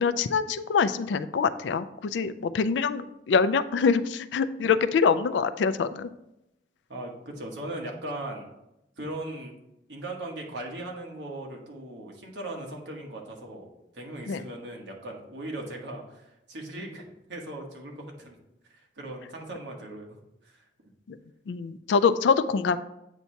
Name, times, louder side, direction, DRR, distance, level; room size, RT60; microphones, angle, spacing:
voice 1, 0.0-6.1 14.3-14.4 21.1-21.2 21.5-22.8, left 5 dB, 80° left, 13 dB, 0.4 m, -25 dB
voice 2, 6.9-8.5 9.0-9.5 9.9-13.7 13.9-16.2 16.5-18.4 18.7-20.2 20.5-20.7, right 1 dB, 75° right, 0 dB, 1.2 m, -38 dB
8.1 x 2.8 x 4.4 m, 0.88 s
head